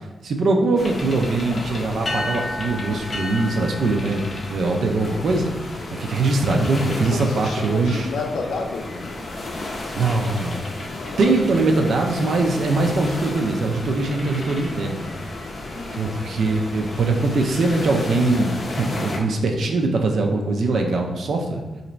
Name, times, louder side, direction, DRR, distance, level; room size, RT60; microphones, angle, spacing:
voice 1, 0.2-5.5 6.0-8.1 9.9-10.7 11.2-15.1 16.0-21.6, right 3 dB, 65° right, 2 dB, 0.4 m, -22 dB
sound 1, 0.8-19.2, left 2 dB, 40° left, 0.6 m, -32 dB
voice 2, 7.1-9.1 10.9-11.3 15.7-16.1, left 4 dB, 85° left, 2 dB, 0.5 m, -31 dB
2.9 x 2.6 x 4.3 m, 1.1 s
wide cardioid pair, 130°, 0 cm